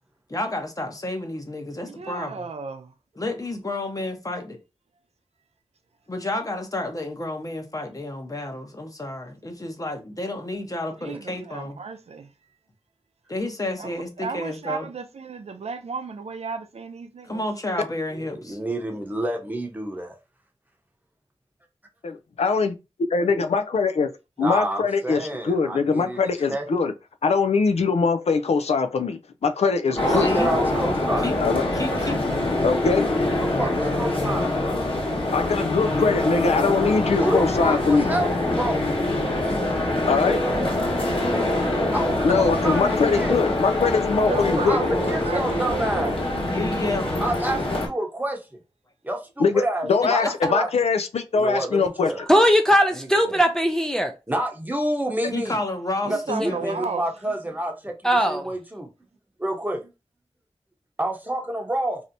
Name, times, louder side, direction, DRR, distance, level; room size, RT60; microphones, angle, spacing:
voice 1, 0.3-2.4 3.2-4.6 6.1-11.8 13.3-14.9 17.2-18.6 30.2-30.6 31.2-31.4 31.7-32.2 44.9-45.3 46.5-47.3 50.0-50.3 55.3-56.8, left 2 dB, 35° left, 0.8 m, -30 dB
voice 2, 1.8-2.9 11.0-12.3 13.8-17.4 39.5-39.6 44.2-46.2 56.1-57.1, right 5 dB, 75° right, 0.5 m, -33 dB
voice 3, 18.1-20.2 24.4-26.2 26.5-26.6 30.1-31.3 33.3-34.5 37.2-38.8 41.9-43.4 44.6-46.1 47.2-48.4 49.0-50.7 51.3-52.2 52.9-53.4 54.3-55.6 56.0-57.9 58.3-58.9 59.4-59.8 61.0-62.0, right 1 dB, 15° right, 0.8 m, -28 dB
voice 4, 22.0-22.8 23.1-24.1 24.4-26.9 27.2-30.3 31.4-31.6 32.6-33.1 35.3-38.1 40.1-40.4 42.2-44.8 49.4-52.1, left 4 dB, 75° left, 0.4 m, -22 dB
sound 1, 30.0-47.9, left 1 dB, 55° left, 1.2 m, -24 dB
voice 5, 52.3-54.1 56.4-56.5 58.0-58.4, equal, 5° left, 0.4 m, -19 dB
3.2 x 2.7 x 2.6 m
wide cardioid pair, 50°, 11 cm